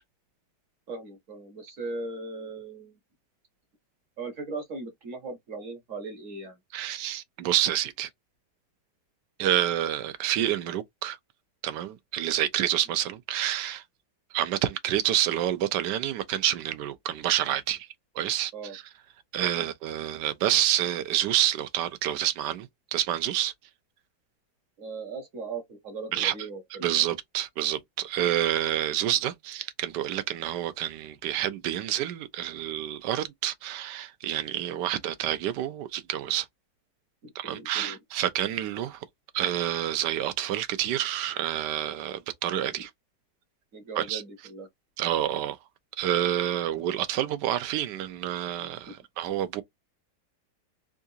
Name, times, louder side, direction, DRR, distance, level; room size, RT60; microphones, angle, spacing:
voice 1, 0.9-2.9 4.2-6.6 18.5-18.8 24.8-27.0 37.2-38.0 43.7-44.7, right 3 dB, 50° right, 1.3 m, -38 dB
voice 2, 6.7-8.1 9.4-11.2 11.6-13.8 14.3-17.9 18.1-18.8 19.3-23.5 26.1-26.3 26.8-36.5 37.3-39.0 39.3-42.9 44.0-44.2 45.0-45.6 46.0-49.6, right 12 dB, 80° right, 1.2 m, -28 dB
3.7 x 2.4 x 2.7 m
omnidirectional pair, 1.8 m